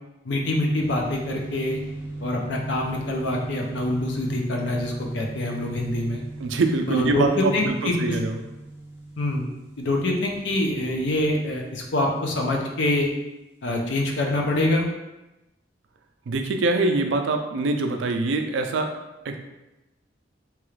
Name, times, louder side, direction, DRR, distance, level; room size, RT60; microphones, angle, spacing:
voice 1, 0.2-1.8 2.2-6.2 6.9-8.2 9.2-9.5 9.8-13.1 13.6-14.9, left 1 dB, 65° left, 0 dB, 0.5 m, -25 dB
sound 1, 0.8-13.3, right 2 dB, 10° right, 0.6 m, -38 dB
voice 2, 6.4-8.4 16.3-18.9 19.2-19.4, right 3 dB, 80° right, 5 dB, 0.4 m, -24 dB
2.9 x 2.4 x 3.1 m, 0.99 s
head